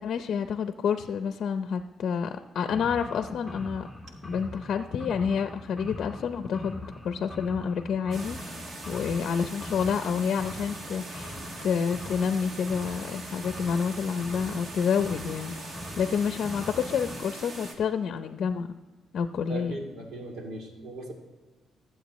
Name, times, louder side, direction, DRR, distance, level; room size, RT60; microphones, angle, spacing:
voice 1, 0.0-3.9 4.2-6.8 7.0-8.4 8.9-15.6 16.0-18.8 19.1-19.8, left 6 dB, 65° left, 8 dB, 0.6 m, -28 dB
sound 1, 2.7-17.2, left 1 dB, 5° left, 2.6 m, -42 dB
sound 2, 8.1-17.7, right 2 dB, 50° right, 1.9 m, -42 dB
voice 2, 19.5-21.1, right 2 dB, 75° right, 1 dB, 2.6 m, -38 dB
21.0 x 7.9 x 3.1 m, 1.3 s
cardioid pair, 90°, 0 cm